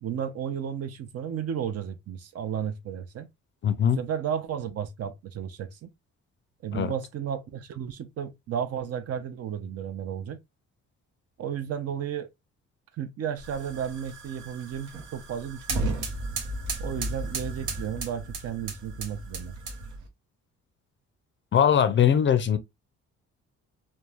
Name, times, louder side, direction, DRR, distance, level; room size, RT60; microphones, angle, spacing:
voice 1, 0.0-3.3 3.8-5.9 6.6-10.4 11.4-12.3 12.9-16.0 16.8-19.6, right 8 dB, 55° right, 0.5 m, -33 dB
voice 2, 3.6-4.0 6.7-6.9 21.5-22.6, left 8 dB, 40° left, 0.4 m, -21 dB
sound 1, 13.4-20.1, right 2 dB, 80° right, 0.8 m, -34 dB
3.0 x 2.2 x 2.3 m
cardioid pair, 90°, 30 cm